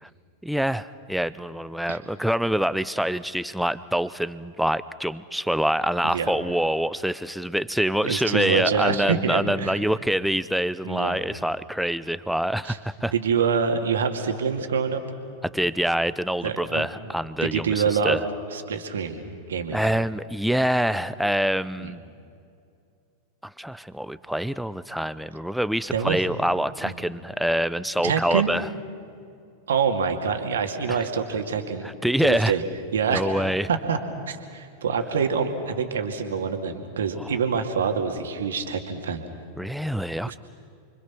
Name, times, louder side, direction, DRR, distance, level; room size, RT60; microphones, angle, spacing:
voice 1, 0.4-13.1 15.4-18.2 19.7-22.0 23.4-28.7 30.9-31.0 31.8-32.5 33.1-33.7 37.2-37.3 39.6-40.3, equal, ahead, 15 dB, 0.7 m, -25 dB
voice 2, 8.0-9.8 10.8-11.2 12.6-12.8 13.1-15.0 16.4-16.9 17.4-18.2 18.5-19.8 21.8-21.9 25.9-26.2 26.8-26.9 28.0-28.5 29.7-31.9 32.2-32.6 32.9-33.2 33.7-34.0 34.3-39.2 40.3-40.4, right 6 dB, 65° right, 5 dB, 2.3 m, -26 dB
29.5 x 24.5 x 6.1 m, 2.4 s
figure-of-eight pair, 90°, 0 cm